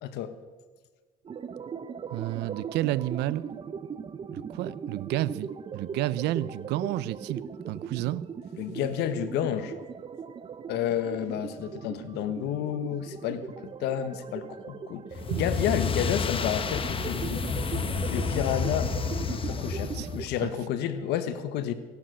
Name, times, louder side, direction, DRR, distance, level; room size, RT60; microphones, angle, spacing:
voice 1, 0.0-0.3 8.6-9.7 10.7-13.5 13.8-15.0 15.3-17.4 18.0-18.9 19.3-21.7, left 10 dB, 90° left, 1.3 m, -30 dB
sound 1, 1.2-20.3, right 6 dB, 30° right, 0.7 m, -39 dB
voice 2, 2.1-3.5 4.3-7.4 7.7-8.3 15.3-15.5 19.9-20.1 20.4-20.5, right 15 dB, 85° right, 0.5 m, -30 dB
sound 2, 15.1-20.4, left 5 dB, 30° left, 1.1 m, -30 dB
16.0 x 11.5 x 6.3 m
cardioid pair, 110°, 17 cm